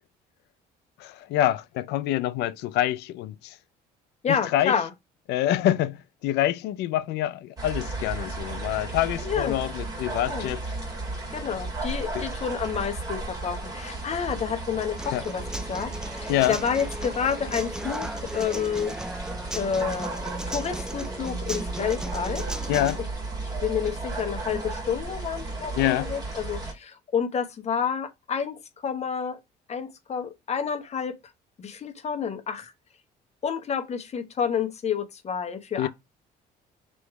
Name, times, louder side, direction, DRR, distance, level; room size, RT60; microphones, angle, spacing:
voice 1, 1.0-3.6 4.3-4.8 5.3-10.6 12.1-12.3 15.1-15.2 16.3-16.6 22.7-23.0 25.8-26.1 35.8-35.9, left 13 dB, 80° left, 0.5 m, -26 dB
voice 2, 4.2-4.9 9.2-9.6 10.3-10.5 11.3-15.4 15.7-18.1 18.3-18.9 19.5-22.4 23.6-29.4 29.7-31.1 31.6-32.7 33.4-35.9, left 7 dB, 40° left, 1.0 m, -29 dB
sound 1, 7.6-26.7, right 2 dB, 20° right, 1.9 m, -34 dB
Human voice / Acoustic guitar, 15.0-23.0, right 1 dB, 5° right, 0.4 m, -37 dB
3.1 x 3.1 x 4.6 m
cardioid pair, 110°, 17 cm